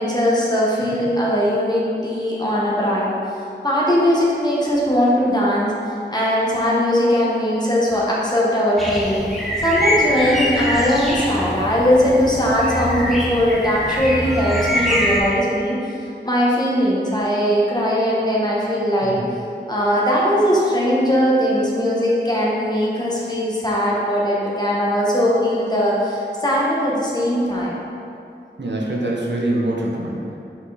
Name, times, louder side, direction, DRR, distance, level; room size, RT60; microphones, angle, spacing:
voice 1, 0.0-3.1 3.6-5.7 6.1-9.2 9.6-15.8 16.2-19.2 19.7-27.8, equal, 25° left, -6 dB, 1.5 m, -19 dB
sound 1, 8.8-15.2, equal, ahead, 1.2 m, -24 dB
voice 2, 28.6-30.4, right 1 dB, 80° right, -3 dB, 0.9 m, -24 dB
5.5 x 5.0 x 4.1 m, 2.7 s
wide cardioid pair, 45°, 18 cm